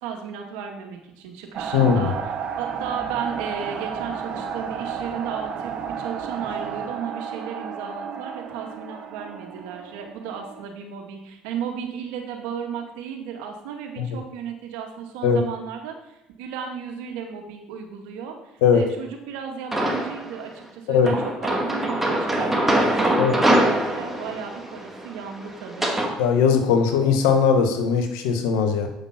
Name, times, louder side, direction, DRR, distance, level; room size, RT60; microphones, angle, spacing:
voice 1, 0.0-2.2 2.6-26.0, right 7 dB, 80° right, 3 dB, 1.8 m, -34 dB
sound 1, 1.5-10.6, right 7 dB, 55° right, 1.4 m, -32 dB
voice 2, 1.7-2.1 14.0-14.2 15.2-15.4 18.6-18.8 20.9-21.1 23.2-23.3 26.2-28.9, left 6 dB, 80° left, 5 dB, 1.5 m, -19 dB
sound 2, 19.7-20.3 21.1-26.1, right 1 dB, 10° right, 2.5 m, -23 dB
8.5 x 6.0 x 5.9 m, 0.90 s
hypercardioid pair, 70°, 3 cm